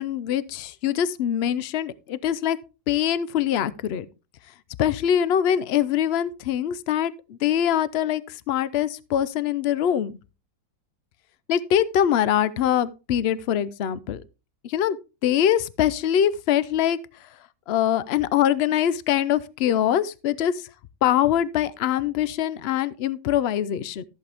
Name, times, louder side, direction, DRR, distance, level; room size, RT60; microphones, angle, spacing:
voice 1, 0.0-2.6 2.9-4.1 4.8-10.2 11.5-14.2 14.6-15.0 15.2-17.0 17.7-20.6 21.0-24.0, left 10 dB, 75° left, 0.5 m, -23 dB
13.5 x 7.7 x 3.4 m
omnidirectional pair, 1.8 m